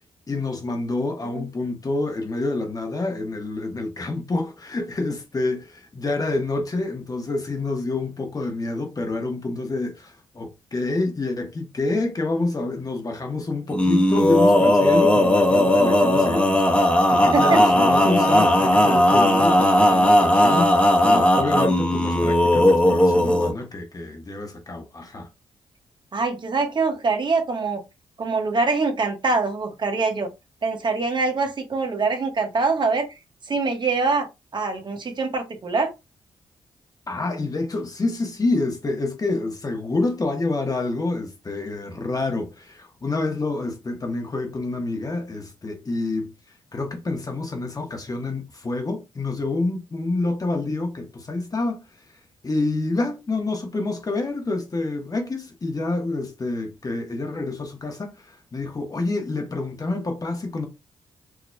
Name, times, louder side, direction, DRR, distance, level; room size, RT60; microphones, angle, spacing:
voice 1, 0.3-25.3 37.1-46.3 46.7-51.8 52.4-60.7, left 2 dB, 35° left, 1.3 m, -27 dB
Male singing, 13.7-23.5, left 1 dB, 10° left, 1.1 m, -17 dB
voice 2, 26.1-27.8 28.2-30.3 30.6-33.1 33.5-34.3 34.5-35.9, right 4 dB, 50° right, 1.2 m, -24 dB
4.8 x 2.9 x 2.2 m
supercardioid pair, 55°, 10 cm